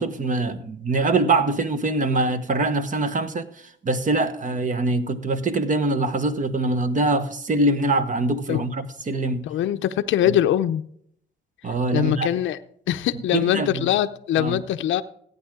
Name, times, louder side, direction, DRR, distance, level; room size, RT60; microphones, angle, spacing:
voice 1, 0.0-3.5 3.8-9.4 10.3-10.4 11.6-12.3 13.3-13.9 14.4-14.6, right 2 dB, 40° right, 1.2 m, -23 dB
voice 2, 9.4-10.8 11.9-12.6 12.9-15.0, left 11 dB, 75° left, 0.6 m, -22 dB
15.0 x 9.1 x 3.7 m
cardioid pair, 90°, 20 cm